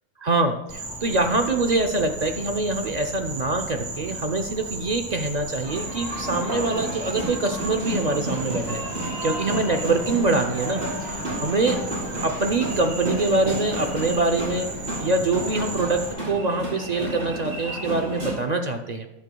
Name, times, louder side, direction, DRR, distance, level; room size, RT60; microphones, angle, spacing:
voice 1, 0.2-8.8 9.2-11.8 12.2-14.7 15.0-19.1, right 2 dB, 65° right, 5 dB, 0.4 m, -24 dB
Insect, 0.7-16.1, right 2 dB, 5° right, 1.7 m, -36 dB
sound 1, 5.6-18.3, right 1 dB, 40° right, 4.3 m, -31 dB
12.5 x 11.0 x 2.3 m, 0.97 s
omnidirectional pair, 1.6 m